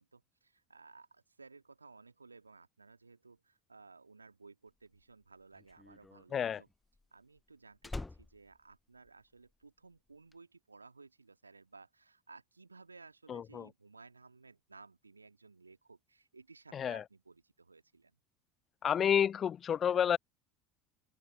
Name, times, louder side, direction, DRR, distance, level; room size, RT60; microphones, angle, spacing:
voice 1, 0.0-6.7 7.1-18.1, right 4 dB, 85° right, 2.8 m, -58 dB
Slam, 4.9-9.6 9.9-10.3, left 2 dB, 10° left, 1.0 m, -47 dB
voice 2, 13.3-13.7 16.7-17.0 18.8-20.2, left 8 dB, 35° left, 0.5 m, -30 dB
figure-of-eight pair, 70°, 0 cm